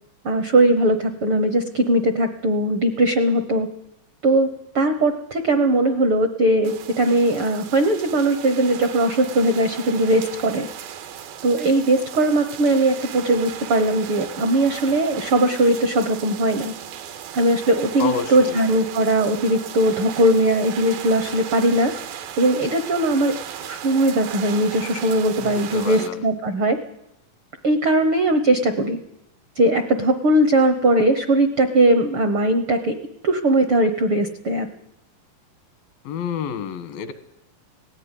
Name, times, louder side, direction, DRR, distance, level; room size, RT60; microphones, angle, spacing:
voice 1, 0.2-3.7 4.2-4.5 4.7-10.7 11.4-16.7 17.3-21.9 22.4-23.3 23.6-26.8 27.6-29.0 29.5-32.9 33.2-34.7, right 1 dB, 70° right, 8 dB, 1.2 m, -19 dB
sound 1, 6.6-26.1, right 9 dB, 90° right, 3.3 m, -36 dB
voice 2, 18.0-18.6 25.4-26.2 36.0-37.1, left 7 dB, 85° left, 11 dB, 3.3 m, -29 dB
18.5 x 15.0 x 9.8 m, 0.87 s
omnidirectional pair, 4.1 m